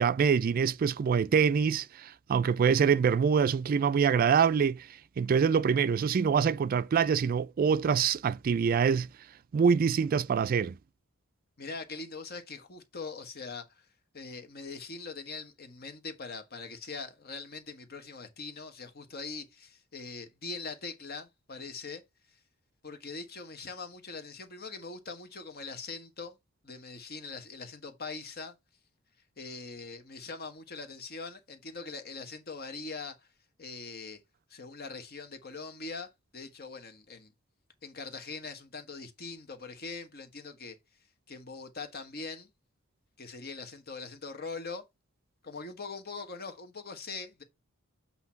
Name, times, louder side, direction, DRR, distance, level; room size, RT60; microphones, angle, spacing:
voice 1, 0.0-4.9 5.2-9.1 9.5-10.8, right 6 dB, 45° right, 0.3 m, -25 dB
voice 2, 11.6-13.9 14.1-22.0 22.8-26.4 26.6-28.5 29.4-33.2 33.6-34.2 34.5-36.1 36.3-37.3 37.8-40.8 41.3-42.5 43.2-44.8 45.4-47.4, left 4 dB, 50° left, 1.3 m, -42 dB
8.1 x 2.9 x 5.7 m
head